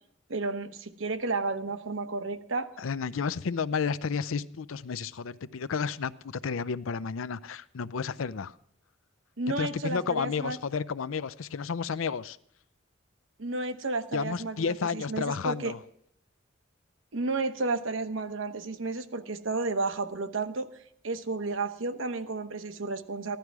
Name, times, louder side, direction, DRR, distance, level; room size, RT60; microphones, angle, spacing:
voice 1, 0.3-2.7 9.4-10.6 13.4-15.7 17.1-20.7 21.0-23.4, right 3 dB, 75° right, 9 dB, 1.0 m, -32 dB
voice 2, 2.8-8.5 9.6-12.4 14.1-15.8, left 5 dB, 85° left, 16 dB, 0.5 m, -31 dB
15.5 x 11.5 x 4.7 m, 0.70 s
head